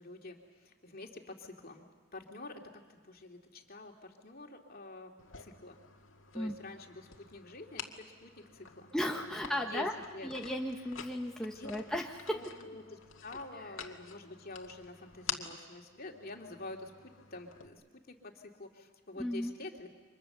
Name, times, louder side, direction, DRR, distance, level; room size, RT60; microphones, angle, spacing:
voice 1, 0.0-5.8 6.3-8.9 9.2-9.9 10.1-10.3 10.8-10.9 11.5-11.7 12.3-19.9, left 2 dB, 45° left, 2 dB, 2.7 m, -48 dB
sound 1, 5.2-17.7, left 7 dB, 75° left, 2.0 m, -48 dB
voice 2, 8.9-9.9 10.2-12.3 19.2-19.5, left 1 dB, 5° left, 0 dB, 1.1 m, -35 dB
29.5 x 25.5 x 6.9 m, 1.4 s
head